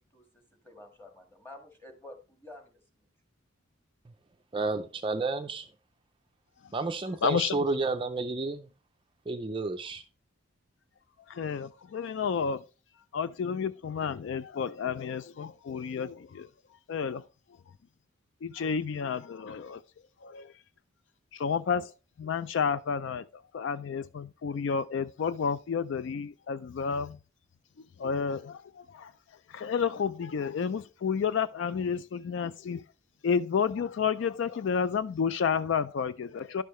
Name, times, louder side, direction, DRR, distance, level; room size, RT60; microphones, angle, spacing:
voice 1, 0.6-2.8, left 1 dB, 10° left, 1.6 m, -49 dB
voice 2, 4.5-5.7 6.7-8.7 9.3-10.0, right 3 dB, 25° right, 0.4 m, -31 dB
voice 3, 7.2-7.8 11.3-12.6 13.1-16.5 16.9-17.2 18.4-19.8 20.2-20.5 21.3-21.9 22.2-27.2 28.0-29.1 29.5-32.8 33.2-36.6, left 6 dB, 60° left, 0.3 m, -31 dB
11.0 x 6.5 x 3.1 m
head